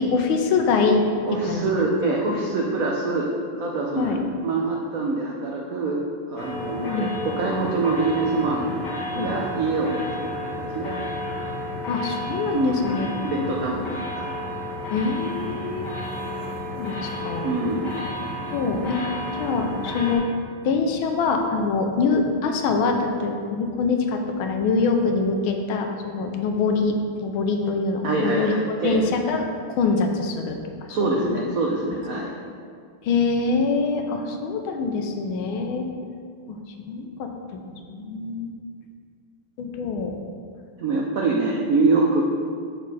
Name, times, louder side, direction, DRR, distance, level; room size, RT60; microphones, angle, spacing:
voice 1, 0.0-1.0 1.4-1.7 2.2-2.3 3.9-4.2 6.8-7.1 9.2-9.3 11.9-13.1 13.4-13.6 14.9-15.9 16.8-17.5 18.4-19.0 19.4-20.3 20.6-28.6 28.8-30.6 30.9-31.4 33.0-35.9 36.5-36.6 36.9-37.6 37.9-38.5 39.6-40.2, left 4 dB, 80° left, 4 dB, 1.5 m, -24 dB
voice 2, 1.2-6.0 6.3-8.7 9.1-10.4 10.7-11.0 11.4-11.6 12.5-12.8 13.2-14.3 17.4-17.8 28.0-29.0 30.9-32.3 40.8-42.2, right 3 dB, 80° right, -1 dB, 0.7 m, -25 dB
sound 1, 6.4-20.2, left 1 dB, 60° left, 1.6 m, -32 dB
6.4 x 6.3 x 4.1 m, 2.1 s
omnidirectional pair, 2.3 m